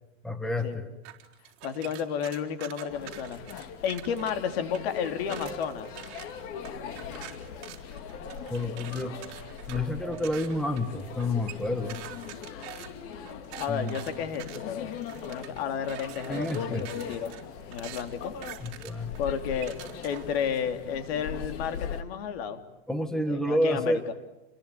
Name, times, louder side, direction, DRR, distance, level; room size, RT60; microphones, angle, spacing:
voice 1, 0.2-0.8 8.5-9.1 9.7-12.0 13.7-13.9 16.3-16.9 18.6-19.1 22.9-24.0, left 1 dB, ahead, 8 dB, 1.6 m, -29 dB
sound 1, 1.0-4.3 4.7-20.4, right 13 dB, 40° right, 4.5 m, -46 dB
voice 2, 1.6-5.9 6.8-7.2 13.6-17.3 17.7-18.3 19.2-19.8 20.0-22.6 23.3-24.1, left 7 dB, 55° left, 8 dB, 3.2 m, -32 dB
sound 2, 2.9-22.0, left 7 dB, 35° left, 2.4 m, -40 dB
sound 3, 3.6-6.4 7.2-7.3 8.2-14.2, right 7 dB, 15° right, 3.3 m, -51 dB
29.0 x 22.0 x 9.3 m, 0.97 s
supercardioid pair, 145°, 36 cm